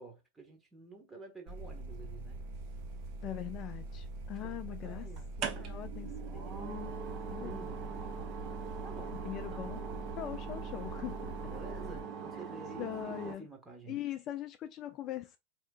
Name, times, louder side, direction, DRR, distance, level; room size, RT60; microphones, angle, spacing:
voice 1, 0.0-2.4 4.4-6.4 7.4-8.1 8.7-9.2 9.5-9.9 11.4-14.0, right 3 dB, 10° right, 1.1 m, -51 dB
sound 1, 1.5-12.0, right 2 dB, 55° right, 1.2 m, -43 dB
sound 2, 3.0-3.8 5.2-13.4, right 6 dB, 40° right, 0.7 m, -42 dB
voice 2, 3.2-5.1 5.7-6.9 7.3-7.6 9.2-9.8 10.2-11.4 12.8-13.5 13.9-15.4, left 13 dB, 35° left, 0.3 m, -41 dB
4.3 x 3.4 x 2.3 m
figure-of-eight pair, 90°, 0 cm